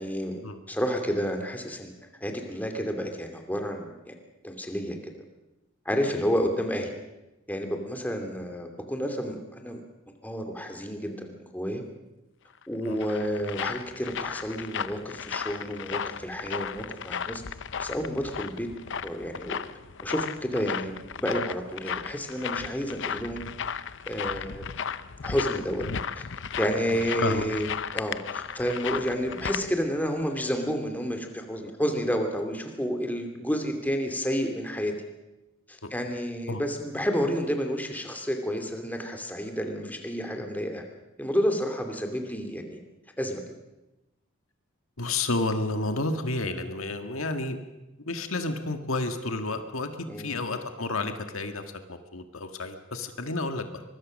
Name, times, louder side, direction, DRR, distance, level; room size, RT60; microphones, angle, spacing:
voice 1, 0.0-0.4 0.7-1.9 2.2-4.2 4.4-5.0 5.9-6.9 7.5-9.8 10.2-11.8 12.7-17.4 17.8-18.7 19.0-19.6 20.0-23.4 24.1-24.6 25.2-25.9 26.2-26.3 26.6-27.7 27.9-34.9 35.7-40.8 41.2-42.8 43.2-43.4 50.1-50.4, equal, 10° left, 4 dB, 2.6 m, -30 dB
sound 1, 12.6-29.6, left 7 dB, 60° left, 0.7 m, -35 dB
voice 2, 26.9-27.5 35.8-35.9 36.5-36.6 45.0-47.6 48.1-51.6 51.9-53.8, left 2 dB, 80° left, 7 dB, 1.8 m, -31 dB
24.0 x 21.5 x 6.5 m, 1.0 s
head